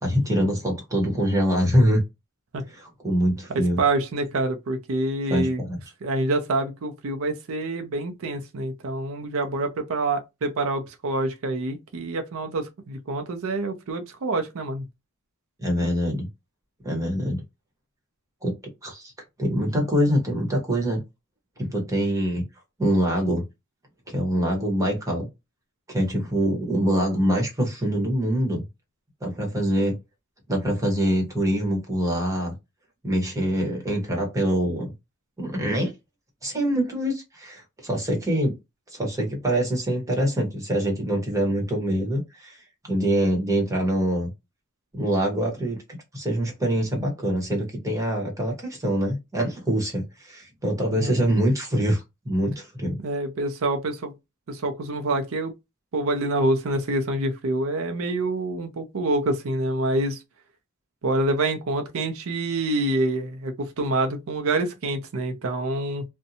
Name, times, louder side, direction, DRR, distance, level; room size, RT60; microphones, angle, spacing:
voice 1, 0.0-2.0 2.7-3.8 5.3-5.8 15.6-16.3 16.8-17.4 18.4-18.5 18.8-19.1 19.4-21.0 21.6-22.4 22.8-23.4 24.1-25.3 25.9-28.6 29.2-30.0 30.5-32.5 33.0-34.9 35.4-35.9 36.4-38.5 38.9-44.3 44.9-45.8 46.1-53.0, equal, 15° right, 1.0 m, -24 dB
voice 2, 3.8-5.6 6.0-14.8 50.9-51.3 53.0-54.1 54.5-55.5 55.9-60.2 61.0-66.0, right 2 dB, 65° right, 0.5 m, -26 dB
2.6 x 2.1 x 2.6 m
head